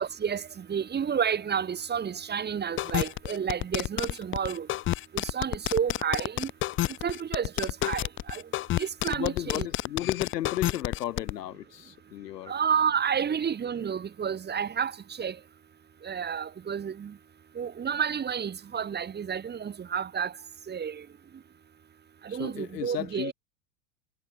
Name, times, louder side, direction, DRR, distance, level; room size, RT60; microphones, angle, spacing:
voice 1, 0.0-4.7 5.1-6.5 7.0-8.4 8.8-9.7 12.5-14.9 15.2-15.4 16.0-17.1 17.5-20.3 20.7-21.0 22.2-23.3, right 7 dB, 20° right, 1.5 m, -30 dB
sound 1, 2.8-11.3, left 15 dB, 25° left, 0.6 m, -29 dB
voice 2, 9.1-12.5 22.3-23.3, left 13 dB, 80° left, 1.2 m, -34 dB
hypercardioid pair, 95°, 47 cm